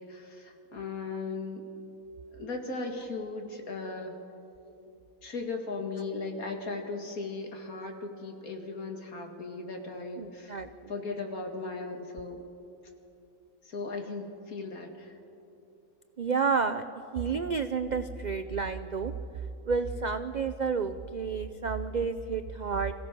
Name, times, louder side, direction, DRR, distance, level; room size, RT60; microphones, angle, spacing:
voice 1, 0.0-1.7 2.3-4.2 5.2-10.6 10.9-12.4 13.6-15.2, left 3 dB, 70° left, 3 dB, 2.5 m, -37 dB
voice 2, 10.2-10.7 16.2-16.8 17.1-19.1 19.7-22.9, right 5 dB, 75° right, 10 dB, 0.4 m, -30 dB
27.0 x 16.0 x 6.1 m, 2.8 s
omnidirectional pair, 1.6 m